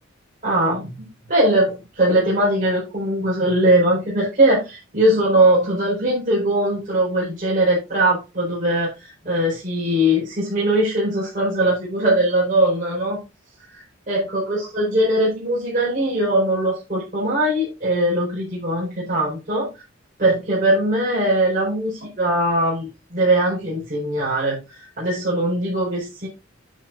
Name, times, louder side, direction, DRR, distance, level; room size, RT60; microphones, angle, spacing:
voice 1, 0.4-13.2 13.7-19.7 20.2-26.3, right 1 dB, 40° right, -6 dB, 4.8 m, -20 dB
9.7 x 8.7 x 2.6 m, 0.26 s
head